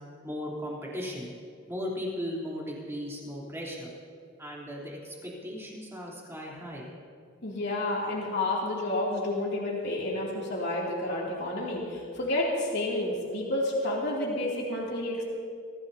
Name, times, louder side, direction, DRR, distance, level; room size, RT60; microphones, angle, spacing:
voice 1, 0.2-1.3 1.7-3.9 4.4-6.9, equal, 15° right, -5 dB, 3.5 m, -37 dB
voice 2, 7.4-15.2, left 1 dB, 60° left, -4 dB, 2.8 m, -30 dB
25.0 x 16.0 x 2.8 m, 2.3 s
head